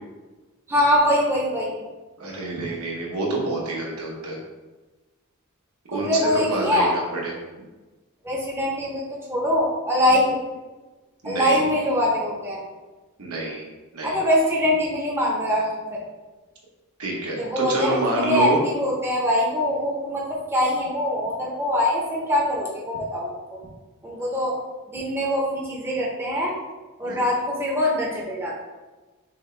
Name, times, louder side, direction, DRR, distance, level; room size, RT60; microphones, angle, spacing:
voice 1, 0.7-1.8 5.9-6.9 8.2-9.0 9.3-10.4 11.2-12.6 14.0-16.0 17.3-23.6 24.0-24.5 24.9-26.5 27.0-28.5, left 1 dB, 10° right, -4 dB, 0.7 m, -23 dB
voice 2, 2.2-4.4 5.9-7.3 10.1-10.2 11.2-11.7 13.2-13.6 13.9-14.2 17.0-18.6 27.0-27.2, right 2 dB, 75° right, -3 dB, 1.1 m, -27 dB
6.1 x 2.2 x 3.2 m, 1.2 s
head